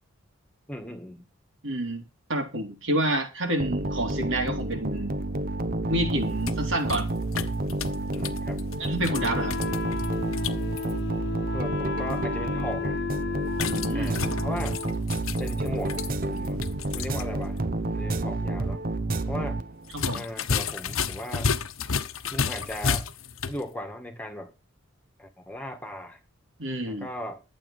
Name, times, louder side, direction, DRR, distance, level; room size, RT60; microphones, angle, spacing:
voice 1, 0.7-1.3 8.1-8.6 11.5-13.0 13.9-14.8 15.4-16.0 16.3-16.7 16.9-17.6 17.9-18.8 19.3-19.6 20.1-21.5 22.3-23.1 23.5-24.5 25.2-26.2 26.9-27.4, equal, 5° left, 1.9 m, -37 dB
voice 2, 1.6-2.0 2.3-5.1 5.9-7.1 8.8-9.6 13.7-14.2 19.9-20.2 26.6-27.1, right 1 dB, 65° right, 3.1 m, -28 dB
sound 1, 3.6-20.0, right 2 dB, 45° right, 0.8 m, -30 dB
sound 2, 6.2-10.9 13.5-17.3 17.6-17.7 19.9-23.6, left 5 dB, 80° left, 1.0 m, -32 dB
Wind instrument woodwind instrument, 9.1-15.1, left 5 dB, 50° left, 0.8 m, -34 dB
12.0 x 7.9 x 5.6 m
head